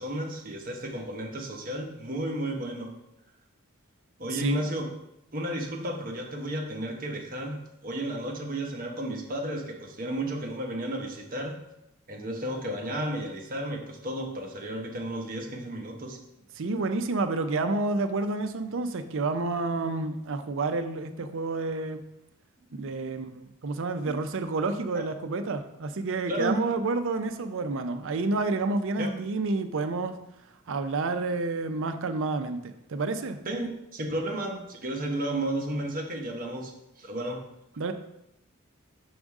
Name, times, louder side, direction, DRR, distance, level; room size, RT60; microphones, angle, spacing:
voice 1, 0.0-2.9 4.2-4.9 5.3-11.6 12.1-16.2 22.9-23.1 24.1-24.2 24.9-25.1 26.3-26.6 29.0-29.1 33.4-36.7 37.0-37.4, right 1 dB, 40° right, 1 dB, 1.0 m, -33 dB
voice 2, 4.3-4.6 16.6-22.0 22.7-30.2 30.7-33.4 37.8-37.9, right 3 dB, 60° right, 9 dB, 0.5 m, -29 dB
6.2 x 5.0 x 3.6 m, 0.85 s
head